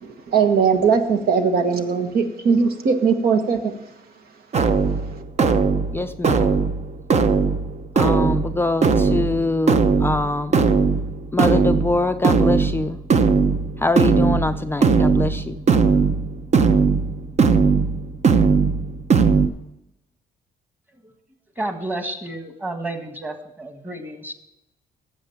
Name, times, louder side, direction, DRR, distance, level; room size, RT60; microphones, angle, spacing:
voice 1, 0.0-3.7, right 5 dB, 70° right, 7 dB, 1.4 m, -19 dB
sound 1, 4.5-19.5, right 5 dB, 45° right, 0.8 m, -19 dB
voice 2, 5.9-6.6 7.9-10.5 11.3-13.0 13.8-15.6, left 2 dB, 15° left, 9 dB, 0.4 m, -24 dB
voice 3, 21.6-24.3, right 2 dB, 10° right, 7 dB, 1.7 m, -31 dB
12.5 x 7.5 x 5.7 m, 0.87 s
cardioid pair, 100°, 16 cm